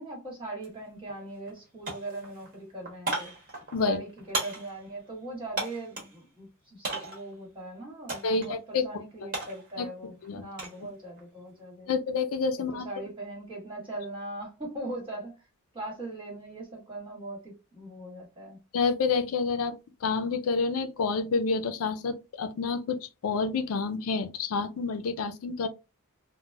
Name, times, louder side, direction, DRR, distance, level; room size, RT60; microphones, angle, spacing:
voice 1, 0.0-3.3 3.8-11.9 12.7-15.5 15.7-18.6, right 2 dB, 25° right, 1.5 m, -40 dB
sound 1, 0.6-0.7 1.1-1.6 1.8-6.2 6.8-7.3 8.1-8.5 8.8-10.8 11.2-11.6, right 2 dB, 40° right, 1.1 m, -36 dB
voice 2, 8.2-8.8 9.8-9.9 10.2-10.4 11.9-12.9 18.7-19.7 20.0-25.7, left 4 dB, 80° left, 0.4 m, -28 dB
3.9 x 2.1 x 2.3 m
head